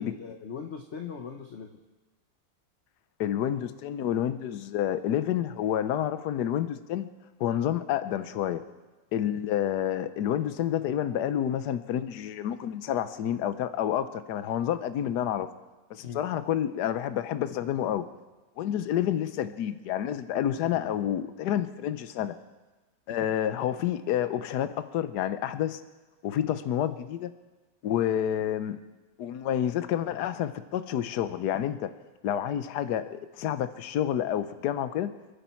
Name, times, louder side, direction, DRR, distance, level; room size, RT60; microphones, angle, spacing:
voice 1, 0.0-1.7 9.2-9.4 16.0-16.2 23.1-23.2, left 6 dB, 45° left, 4 dB, 1.2 m, -39 dB
voice 2, 3.2-7.1 7.4-8.6 9.1-15.5 15.9-18.0 18.6-22.3 23.1-25.8 26.2-27.3 27.8-28.8 29.2-31.9 32.2-35.1, left 10 dB, 70° left, 12 dB, 1.3 m, -29 dB
29.0 x 9.8 x 4.5 m, 1.2 s
omnidirectional pair, 1.9 m